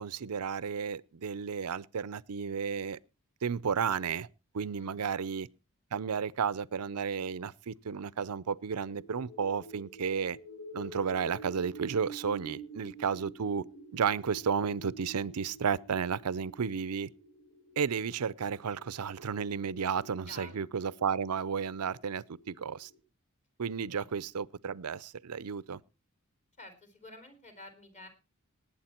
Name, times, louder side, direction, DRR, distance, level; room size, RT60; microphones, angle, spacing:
voice 1, 0.0-3.0 3.4-4.3 4.5-5.5 5.9-10.4 10.7-13.6 13.9-17.1 17.8-22.9 23.6-25.8, right 6 dB, 90° right, 0.6 m, -33 dB
voice 2, 4.7-5.2 20.3-20.7 23.9-24.1 26.6-28.1, left 2 dB, 35° left, 3.6 m, -51 dB
sound 1, 8.7-23.0, right 2 dB, 80° left, 5.8 m, -49 dB
19.0 x 8.5 x 4.4 m
head